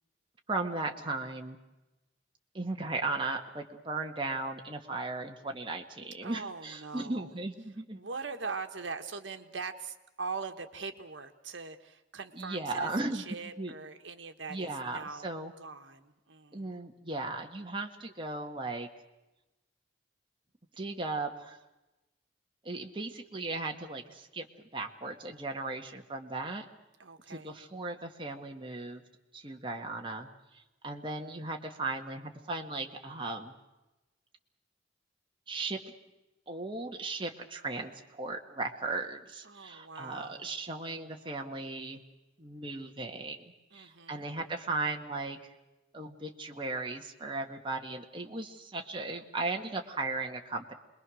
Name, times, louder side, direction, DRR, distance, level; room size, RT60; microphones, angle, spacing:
voice 1, 0.5-1.6 2.5-8.0 12.3-13.7 14.5-15.5 16.5-18.9 20.8-21.6 22.6-24.5 24.7-26.6 27.3-29.0 29.3-30.3 30.8-33.5 35.5-35.8 36.5-42.0 42.4-45.4 45.9-50.7, right 3 dB, 25° right, 2 dB, 1.7 m, -36 dB
voice 2, 6.2-7.4 7.9-15.3 15.6-16.7 27.0-27.6 39.4-40.5 43.7-44.3, right 4 dB, 75° right, 7 dB, 1.5 m, -42 dB
26.5 x 21.5 x 6.4 m, 1.0 s
head